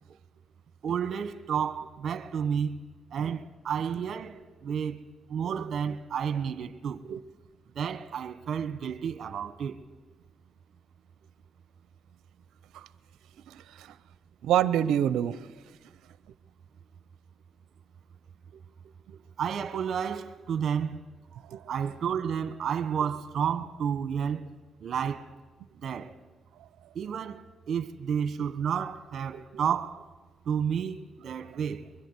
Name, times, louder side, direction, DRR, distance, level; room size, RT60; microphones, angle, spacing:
voice 1, 0.8-2.8 3.1-7.0 7.7-9.8 19.4-21.0 21.7-24.5 24.8-25.3 25.8-26.2 26.9-30.0 30.4-31.8, right 7 dB, 65° right, 1.4 m, -31 dB
voice 2, 13.5-14.0 14.4-15.5 19.1-19.2 21.3-21.7 29.3-29.4, right 10 dB, 85° right, 0.7 m, -28 dB
24.0 x 21.0 x 8.3 m
cardioid pair, 75°, 0 cm